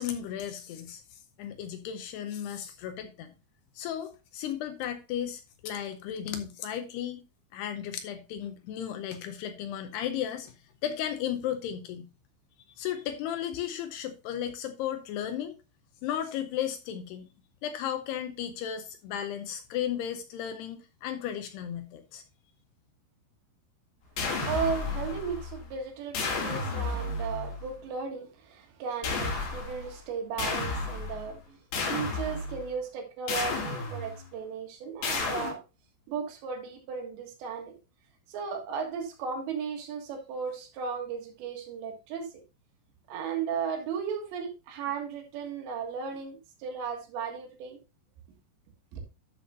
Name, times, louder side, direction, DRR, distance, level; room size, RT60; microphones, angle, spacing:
voice 1, 0.0-3.3 3.8-7.2 7.5-10.5 10.8-12.1 12.8-15.6 16.0-17.3 17.6-22.2, left 10 dB, 80° left, 2.4 m, -35 dB
sound 1, 24.2-25.7 26.1-27.7 29.0-30.0 30.4-31.3 31.7-32.7 33.3-34.3 35.0-35.5, left 3 dB, 55° left, 4.1 m, -32 dB
voice 2, 24.4-31.6 31.9-35.6 36.1-37.7 38.3-42.3 43.1-47.8 48.9-49.0, right 6 dB, 70° right, 3.8 m, -35 dB
12.0 x 6.8 x 2.6 m
omnidirectional pair, 5.5 m